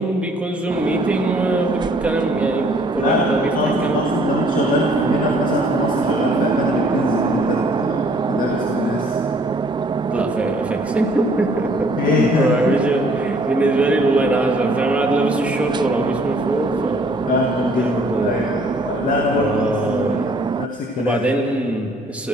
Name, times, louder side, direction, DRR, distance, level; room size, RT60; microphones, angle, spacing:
voice 1, 0.0-4.0 10.1-17.3 17.8-18.5 19.3-20.3 21.0-22.3, right 1 dB, 5° right, 1 dB, 2.7 m, -22 dB
sound 1, 0.7-20.7, right 7 dB, 25° right, 0.4 m, -23 dB
voice 2, 3.0-9.2 12.0-12.8 17.3-21.3, left 4 dB, 55° left, 0 dB, 2.3 m, -23 dB
27.0 x 15.0 x 6.5 m, 2.6 s
cardioid pair, 110°, 17 cm